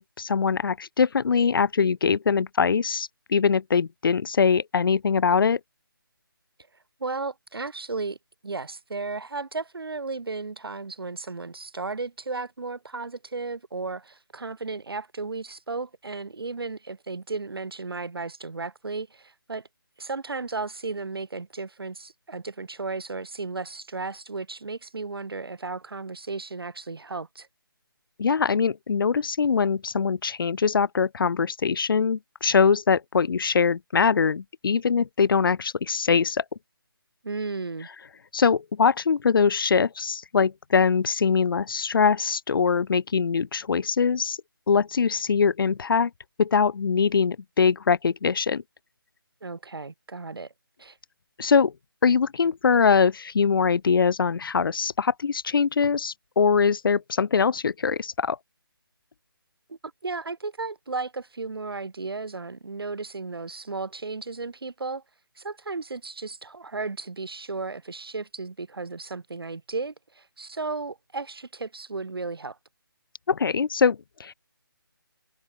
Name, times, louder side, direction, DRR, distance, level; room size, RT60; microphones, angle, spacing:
voice 1, 0.0-5.6 28.2-36.4 38.3-44.4 44.7-46.1 46.4-48.6 51.4-51.7 52.0-58.4 73.3-74.3, left 5 dB, 65° left, 0.4 m, -22 dB
voice 2, 7.0-8.2 8.4-19.7 20.0-27.5 37.2-37.9 49.4-50.5 50.8-51.0 59.7-65.0 65.4-72.6, right 3 dB, 80° right, 1.9 m, -34 dB
figure-of-eight pair, 165°, 12 cm